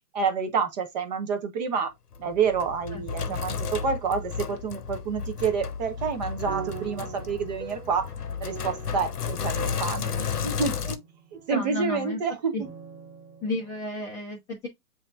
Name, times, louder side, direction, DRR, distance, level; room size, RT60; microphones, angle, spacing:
voice 1, 0.1-1.9 2.2-8.1 8.4-10.1 10.4-11.0 11.3-12.5, right 5 dB, 30° right, 0.8 m, -28 dB
Sink (filling or washing), 2.1-11.0, left 6 dB, 80° left, 0.9 m, -33 dB
voice 2, 2.9-3.4 11.5-12.2 12.5-12.6 13.4-14.7, left 2 dB, 5° left, 0.6 m, -33 dB
sound 1, 6.0-12.0 12.6-13.8, right 8 dB, 75° right, 1.6 m, -43 dB
7.5 x 2.8 x 2.3 m
figure-of-eight pair, 130°, 46 cm